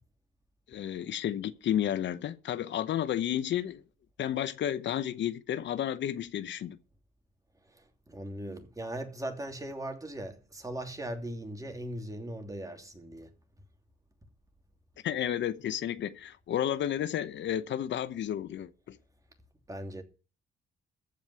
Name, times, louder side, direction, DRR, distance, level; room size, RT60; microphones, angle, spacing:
voice 1, 0.7-3.8 4.2-6.8 15.0-19.0, left 10 dB, 65° left, 0.9 m, -32 dB
voice 2, 8.1-13.3 19.7-20.0, right 1 dB, 15° right, 2.8 m, -39 dB
14.5 x 5.2 x 9.6 m
cardioid pair, 90°, 20 cm